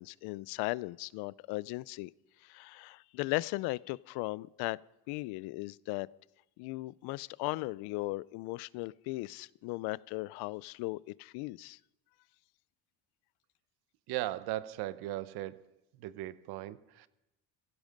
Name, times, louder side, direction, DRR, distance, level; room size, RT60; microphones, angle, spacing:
voice 1, 0.0-2.1 2.4-4.8 5.1-6.1 6.6-11.8, left 21 dB, 85° left, 23 dB, 0.5 m, -37 dB
voice 2, 14.1-15.6 16.0-17.1, right 15 dB, 80° right, 16 dB, 0.9 m, -37 dB
16.0 x 16.0 x 5.2 m, 0.93 s
cardioid pair, 110°, 38 cm